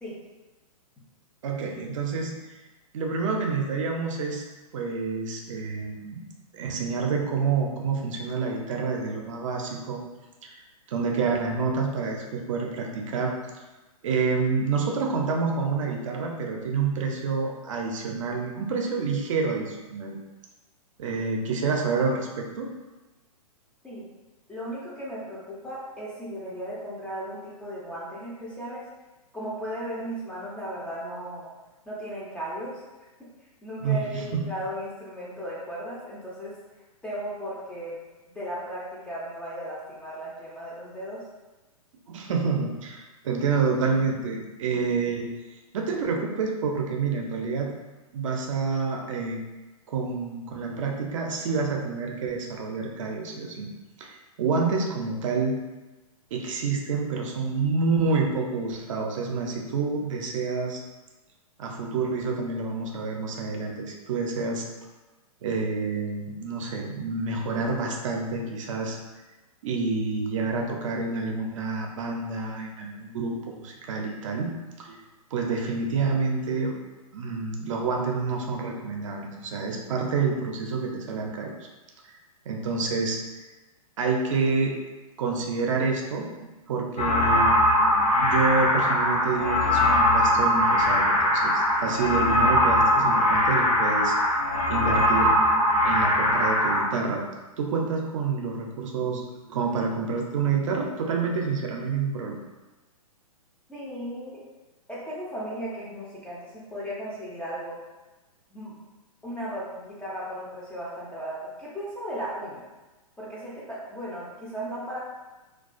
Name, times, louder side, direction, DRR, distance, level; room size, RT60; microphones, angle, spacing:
voice 1, 1.4-2.3 2.9-4.4 4.7-6.2 6.5-10.0 10.4-10.6 10.9-13.3 14.0-20.2 21.0-22.7 33.8-34.4 42.1-45.3 45.7-47.7 48.1-49.4 49.9-53.7 54.0-55.6 56.3-60.8 61.6-64.6 65.4-69.0 69.6-74.5 74.8-75.0 75.3-76.8 77.1-81.5 82.5-83.2 84.0-84.8 85.2-86.3 86.7-87.5 88.1-94.1 94.7-95.4 95.8-97.2 97.6-99.2 99.5-102.4, right 4 dB, 55° right, 1 dB, 0.5 m, -28 dB
voice 2, 24.5-28.8 29.3-31.5 31.9-32.8 33.6-36.5 37.0-37.9 38.3-41.2 103.7-104.4 104.9-107.8 108.5-108.8 109.2-112.6 113.2-115.0, equal, 5° left, -7 dB, 0.4 m, -36 dB
sound 1, 87.0-96.8, left 1 dB, 85° left, 0.7 m, -21 dB
2.3 x 2.2 x 2.4 m, 1.1 s
hypercardioid pair, 125°, 19 cm